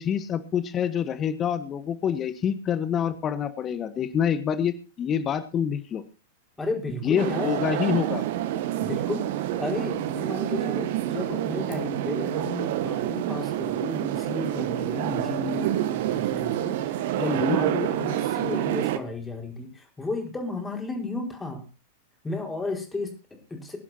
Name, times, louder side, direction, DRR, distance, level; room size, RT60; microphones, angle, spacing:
voice 1, 0.0-6.0 7.0-8.2 17.2-17.6, left 8 dB, 30° left, 12 dB, 1.3 m, -26 dB
voice 2, 6.6-7.5 8.8-21.7 22.2-23.8, left 2 dB, 10° left, 3 dB, 4.7 m, -33 dB
sound 1, 7.2-19.0, right 12 dB, 60° right, 1.3 m, -28 dB
24.0 x 11.0 x 2.8 m, 0.30 s
figure-of-eight pair, 95°, 0 cm